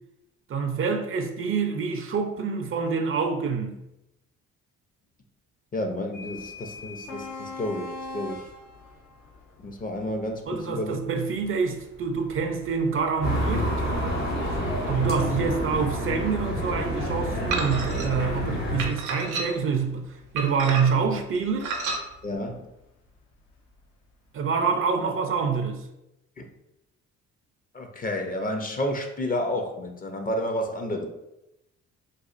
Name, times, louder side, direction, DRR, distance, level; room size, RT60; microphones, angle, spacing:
voice 1, 0.5-3.8 10.5-13.7 14.8-20.1 20.3-21.7 24.3-25.8, right 5 dB, 45° right, 0.4 m, -26 dB
voice 2, 5.7-8.4 9.6-11.0 22.2-22.6 26.4-26.5 27.7-31.1, left 1 dB, 30° left, 0.5 m, -30 dB
sound 1, 6.1-23.8, left 3 dB, 80° left, 0.7 m, -45 dB
sound 2, 13.2-18.9, equal, 60° left, 1.3 m, -28 dB
sound 3, 17.5-18.1 18.8-19.7 20.4-21.1 21.6-22.0, right 3 dB, 85° right, 0.6 m, -30 dB
4.0 x 2.4 x 2.4 m
cardioid pair, 90°, 30 cm